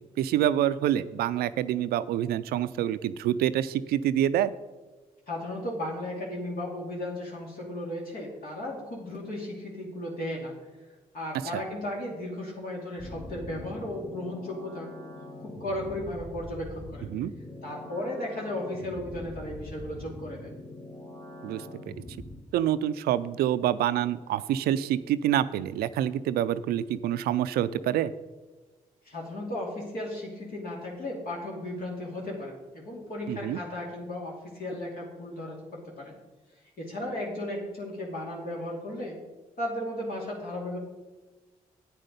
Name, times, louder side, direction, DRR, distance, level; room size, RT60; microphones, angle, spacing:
voice 1, 0.2-4.5 11.5-11.6 17.1-17.3 21.4-22.0 22.5-28.1 33.3-33.6, right 11 dB, 85° right, 15 dB, 0.4 m, -27 dB
voice 2, 5.3-10.5 11.1-14.9 15.4-17.1 17.6-20.5 29.0-36.2 36.8-39.2 39.6-40.8, left 1 dB, 70° left, -3 dB, 2.7 m, -35 dB
sound 1, 13.0-22.4, left 1 dB, 30° left, 3.7 m, -43 dB
8.9 x 7.7 x 5.3 m, 1.2 s
supercardioid pair, 55°, 16 cm